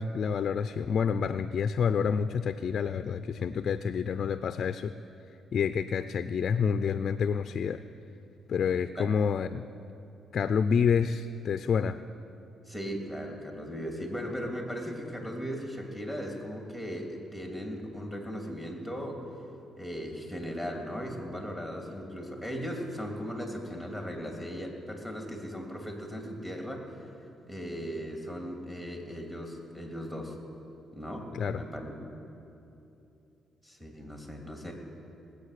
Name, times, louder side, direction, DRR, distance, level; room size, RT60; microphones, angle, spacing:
voice 1, 0.0-4.9 5.5-7.8 8.5-9.7 10.3-12.0 31.3-31.6, left 6 dB, 55° left, 11 dB, 0.4 m, -28 dB
voice 2, 12.7-19.2 19.8-26.8 27.5-30.4 30.9-31.9 33.6-34.7, equal, 10° right, 1 dB, 2.6 m, -37 dB
20.0 x 8.4 x 6.5 m, 2.8 s
cardioid pair, 90°, 0 cm